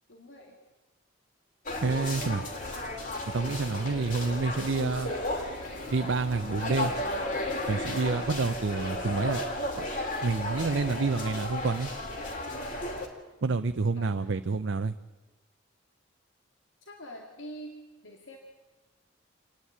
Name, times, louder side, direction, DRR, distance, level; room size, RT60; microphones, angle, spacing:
voice 1, 0.1-0.6 14.0-14.4 16.8-17.7 18.0-18.4, equal, 80° left, 1 dB, 2.3 m, -45 dB
sound 1, 1.7-13.1, left 1 dB, 40° left, 2.7 m, -34 dB
voice 2, 1.8-2.5 3.3-5.1 5.9-6.9 7.7-9.4 9.8-9.9 10.2-11.9 13.4-14.9, right 4 dB, 70° right, 8 dB, 0.6 m, -28 dB
27.5 x 10.0 x 9.5 m, 1.2 s
head